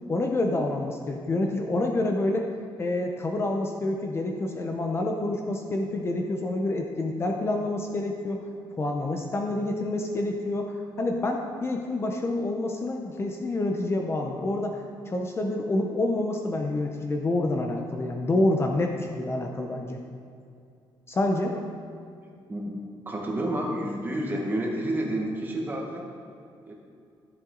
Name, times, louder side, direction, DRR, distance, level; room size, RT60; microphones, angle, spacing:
voice 1, 0.1-2.5 2.8-8.4 8.8-20.0 21.1-21.7, left 2 dB, 30° left, 2 dB, 0.8 m, -28 dB
voice 2, 23.0-26.1 26.7-26.8, right 1 dB, 25° right, -1 dB, 1.6 m, -29 dB
13.0 x 7.9 x 3.9 m, 2.4 s
cardioid pair, 145°, 9 cm